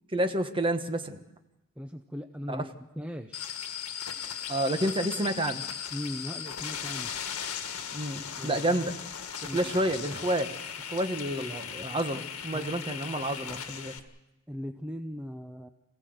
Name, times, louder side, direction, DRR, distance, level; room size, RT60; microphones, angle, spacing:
voice 1, 0.1-1.2 2.5-2.7 4.5-5.6 7.9-9.0 9.5-10.5 10.9-13.9, right 1 dB, 25° right, 7 dB, 1.4 m, -29 dB
voice 2, 1.8-2.7 3.0-3.5 5.9-7.1 8.4-8.8 9.4-9.7 12.5-12.9 14.5-15.7, equal, 5° right, 6 dB, 0.7 m, -39 dB
sound 1, 3.3-14.0, left 8 dB, 75° left, 1.9 m, -38 dB
26.5 x 16.5 x 7.9 m, 0.99 s
head